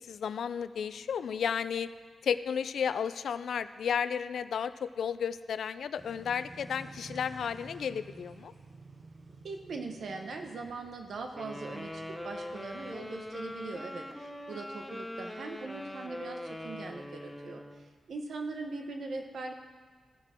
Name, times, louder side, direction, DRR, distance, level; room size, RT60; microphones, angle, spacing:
voice 1, 0.1-1.9 2.2-8.5, left 7 dB, 75° left, 13 dB, 0.3 m, -33 dB
sound 1, 6.0-13.7, right 2 dB, 30° right, 0.8 m, -52 dB
voice 2, 9.4-17.6 18.1-19.5, right 3 dB, 65° right, 4 dB, 1.1 m, -41 dB
sound 2, 11.3-17.9, left 1 dB, 5° left, 0.7 m, -42 dB
16.0 x 6.0 x 4.5 m, 1.5 s
wide cardioid pair, 130°, 0 cm